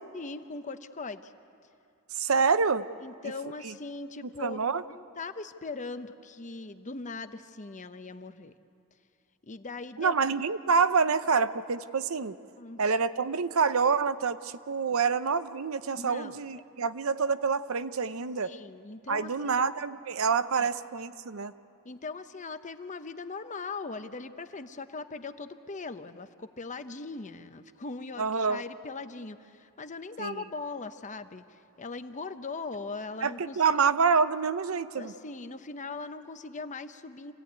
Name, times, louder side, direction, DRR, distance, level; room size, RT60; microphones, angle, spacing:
voice 1, 0.1-1.3 3.0-8.5 9.4-10.1 12.6-12.8 16.0-16.4 18.4-19.6 20.6-20.7 21.8-33.6 35.0-37.3, left 3 dB, 35° left, 10 dB, 0.8 m, -40 dB
voice 2, 2.2-2.9 4.4-4.8 10.0-12.4 12.8-18.5 19.1-21.5 28.2-28.6 30.2-30.4 33.2-35.1, right 5 dB, 75° right, 13 dB, 0.7 m, -27 dB
27.0 x 16.5 x 9.4 m, 2.5 s
head